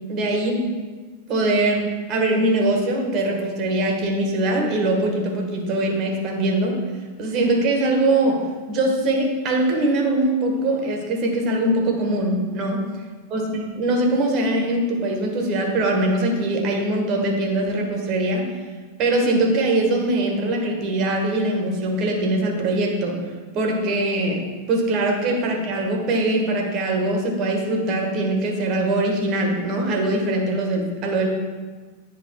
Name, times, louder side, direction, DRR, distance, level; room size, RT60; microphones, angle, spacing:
voice 1, 0.1-0.6 1.3-6.8 7.2-8.4 8.7-12.9 13.3-18.5 19.0-23.2 23.5-24.4 24.7-31.3, right 2 dB, 35° right, 1 dB, 1.7 m, -22 dB
9.6 x 3.5 x 4.8 m, 1.4 s
figure-of-eight pair, 90°, 0 cm